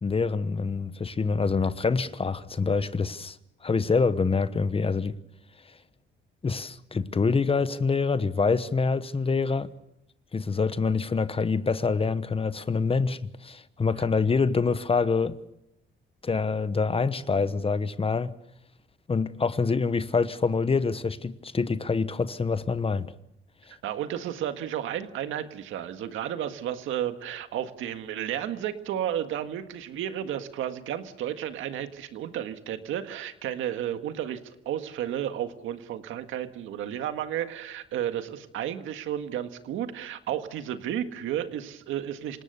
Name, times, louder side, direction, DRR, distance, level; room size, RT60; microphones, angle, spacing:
voice 1, 0.0-3.4 3.6-5.2 6.4-9.7 10.3-15.4 16.2-18.3 19.1-23.1, left 4 dB, 30° left, 1.1 m, -26 dB
voice 2, 23.8-42.4, right 10 dB, 85° right, 1.8 m, -32 dB
27.5 x 18.5 x 6.8 m
cardioid pair, 90°, 20 cm